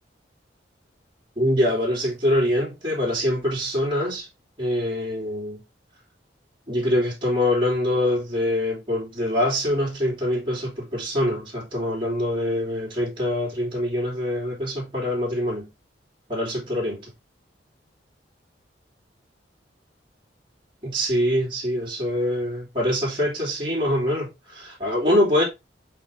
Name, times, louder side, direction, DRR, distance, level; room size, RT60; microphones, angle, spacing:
voice 1, 1.4-4.3 4.6-5.6 6.7-15.7 16.3-17.1 20.8-25.4, left 1 dB, 30° right, 3.0 m, -24 dB
7.7 x 3.8 x 3.3 m
head